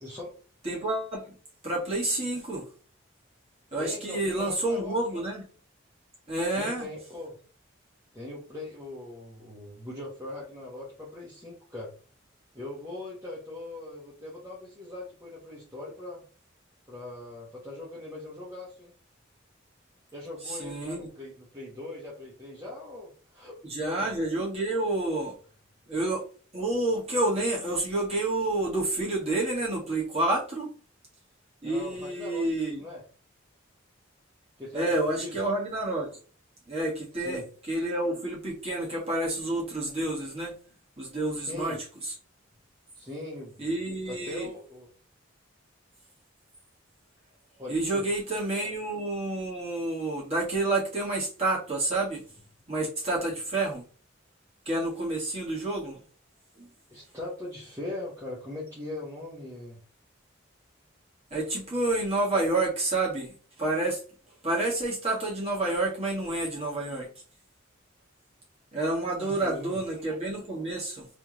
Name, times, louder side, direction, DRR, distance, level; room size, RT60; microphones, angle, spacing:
voice 1, 0.0-0.3 3.8-5.2 6.5-7.4 8.1-11.9 12.5-16.2 16.9-18.9 20.1-24.1 31.6-33.0 34.6-35.4 37.2-37.5 41.3-41.8 42.9-43.8 44.0-44.9 47.6-48.1 56.9-59.8 68.9-69.8, left 2 dB, 15° right, -7 dB, 1.2 m, -40 dB
voice 2, 0.6-1.3 1.6-2.6 3.7-5.4 6.3-6.8 20.5-21.1 23.6-25.3 25.9-26.2 26.5-30.7 31.6-32.8 34.7-36.2 36.7-37.4 37.7-40.5 41.0-41.8 43.6-44.5 47.7-52.2 52.7-53.8 54.6-56.0 56.6-56.7 61.3-63.3 63.6-64.0 64.4-67.1 68.7-71.1, right 2 dB, 30° right, -4 dB, 1.7 m, -29 dB
3.5 x 3.4 x 3.0 m, 0.39 s
head